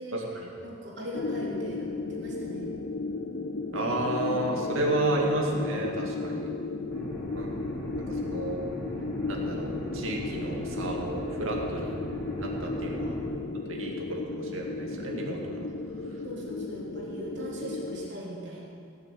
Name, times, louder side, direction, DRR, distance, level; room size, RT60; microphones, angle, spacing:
voice 1, 0.0-2.7 12.9-13.0 16.2-18.6, equal, 60° right, -4 dB, 3.2 m, -40 dB
sound 1, 1.1-18.1, left 3 dB, 50° left, 0.6 m, -35 dB
voice 2, 3.7-6.5 7.3-7.5 8.0-8.6 9.2-12.0 12.4-13.2 13.7-15.7, right 1 dB, 80° right, -1 dB, 2.3 m, -31 dB
sound 2, 6.9-13.3, right 1 dB, 10° left, 2.4 m, -38 dB
17.0 x 6.9 x 7.7 m, 2.5 s
head